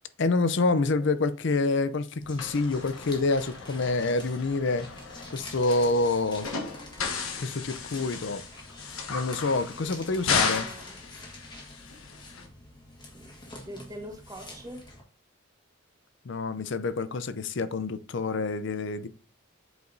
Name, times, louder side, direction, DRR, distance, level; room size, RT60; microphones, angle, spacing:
voice 1, 0.2-4.9 5.3-6.5 7.4-8.4 9.1-10.7 16.2-19.1, left 3 dB, 55° left, 0.5 m, -27 dB
voice 2, 0.7-1.1 9.8-11.0 13.1-13.4 13.7-14.9, equal, 15° right, 1.0 m, -44 dB
sound 1, 2.2-15.0, left 2 dB, 20° left, 1.5 m, -46 dB
sound 2, 2.4-12.5, left 5 dB, 75° left, 1.2 m, -35 dB
7.8 x 5.0 x 2.7 m
head